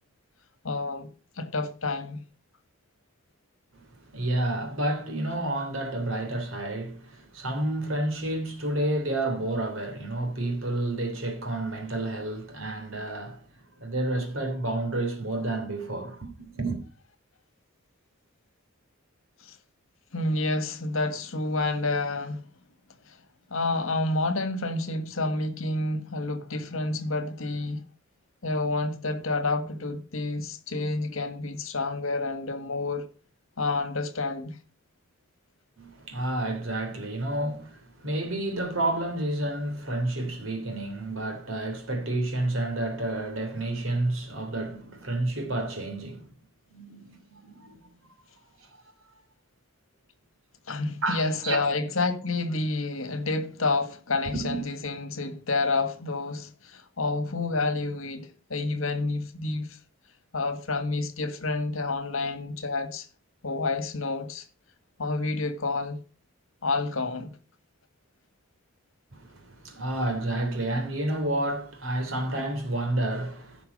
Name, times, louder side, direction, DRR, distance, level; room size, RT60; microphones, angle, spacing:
voice 1, 0.6-1.1 1.4-2.2 19.4-19.6 20.1-22.4 23.1-23.2 23.5-27.8 28.4-33.1 33.6-34.6 50.7-59.8 60.3-63.1 63.4-64.4 65.0-66.0 66.6-67.3, left 3 dB, 70° left, 1.5 m, -29 dB
voice 2, 4.1-13.4 13.8-16.8 35.8-46.3 46.7-47.8 48.6-48.7 51.0-51.6 54.3-54.6 69.1-73.6, right 1 dB, 65° right, 3.0 m, -30 dB
15.5 x 5.9 x 5.3 m
head